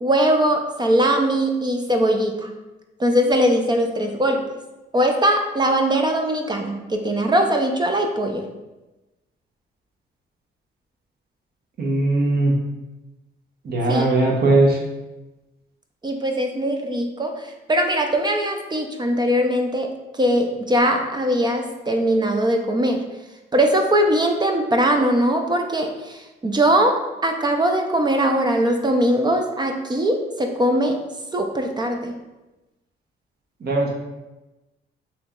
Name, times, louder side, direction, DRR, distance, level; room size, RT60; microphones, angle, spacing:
voice 1, 0.0-2.5 3.0-4.4 4.9-8.4 13.9-14.1 16.0-19.9 20.1-23.0 23.5-27.0 27.2-31.0 31.3-32.2, right 1 dB, 20° right, 4 dB, 0.4 m, -21 dB
voice 2, 11.8-12.5 13.6-14.8 33.6-33.9, right 2 dB, 55° right, 0 dB, 0.9 m, -19 dB
3.1 x 2.9 x 3.6 m, 1.0 s
cardioid pair, 90°, 20 cm